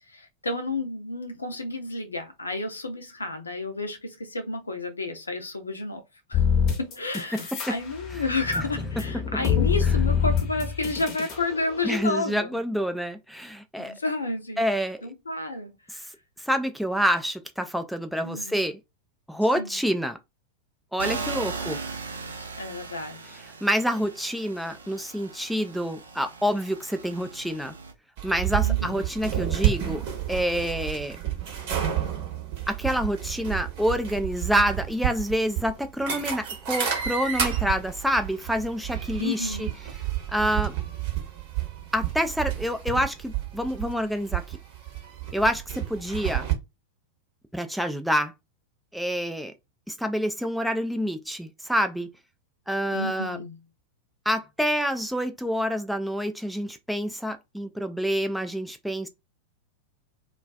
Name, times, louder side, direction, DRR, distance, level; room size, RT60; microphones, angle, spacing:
voice 1, 0.1-6.0 6.3-6.4 6.8-12.6 13.8-14.6 15.0-15.7 18.2-18.7 19.6-19.8 21.6-21.8 22.1-23.4 28.6-29.1 39.2-39.7 52.9-53.6, left 2 dB, 80° left, 0.5 m, -31 dB
sound 1, 6.3-7.7 8.1-11.4, left 7 dB, 40° left, 0.7 m, -25 dB
voice 2, 11.8-13.9 14.6-15.1 15.9-16.0 16.4-18.8 19.3-20.2 20.9-21.8 23.6-27.7 28.2-30.0 30.3-31.2 32.7-39.7 40.3-40.7 41.9-44.6 45.3-46.5 47.5-48.3 48.9-49.5 49.9-52.1 52.7-53.4 54.3-59.1, equal, ahead, 0.3 m, -27 dB
sound 2, 21.0-27.9, right 4 dB, 75° right, 0.4 m, -38 dB
sound 3, 28.2-46.5, right 11 dB, 50° right, 0.9 m, -30 dB
2.3 x 2.3 x 2.3 m
figure-of-eight pair, 90°, 0 cm